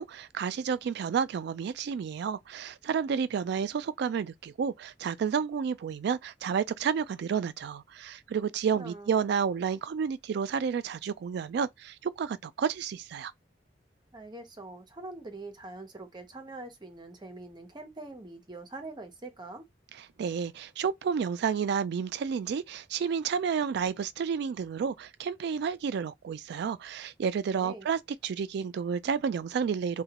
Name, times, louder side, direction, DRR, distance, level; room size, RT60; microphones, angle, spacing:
voice 1, 0.0-13.3 20.2-30.0, right 6 dB, 65° right, 0.3 m, -31 dB
voice 2, 8.7-9.1 14.1-19.7 27.5-27.9, right 2 dB, 25° right, 0.7 m, -44 dB
3.0 x 2.1 x 2.8 m
head